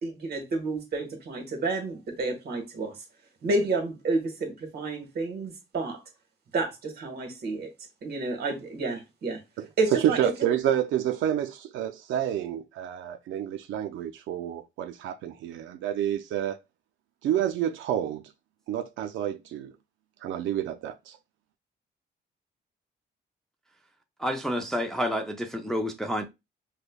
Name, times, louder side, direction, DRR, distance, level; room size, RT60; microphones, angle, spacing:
voice 1, 0.0-3.0 3.4-6.0 6.5-7.7 8.0-9.4 9.8-10.3, right 3 dB, 55° right, 1.3 m, -30 dB
voice 2, 10.2-16.6 17.2-18.2 18.7-19.7 20.2-21.2, right 10 dB, 90° right, 0.4 m, -29 dB
voice 3, 24.2-26.2, equal, ahead, 0.4 m, -29 dB
5.1 x 2.1 x 2.2 m
cardioid pair, 145°, 19 cm